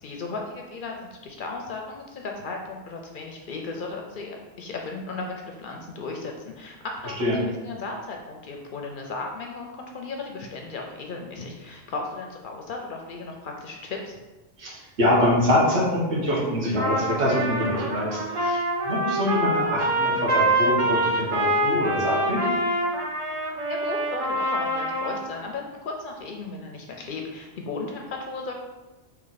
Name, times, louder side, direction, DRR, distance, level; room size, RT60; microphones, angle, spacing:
voice 1, 0.0-14.2 23.7-28.5, left 3 dB, 60° left, 1 dB, 0.6 m, -35 dB
voice 2, 14.6-22.4, left 1 dB, 75° right, -6 dB, 1.5 m, -24 dB
Trumpet, 16.7-25.3, right 1 dB, 40° right, 0.5 m, -25 dB
3.3 x 3.0 x 3.9 m, 1.1 s
omnidirectional pair, 1.1 m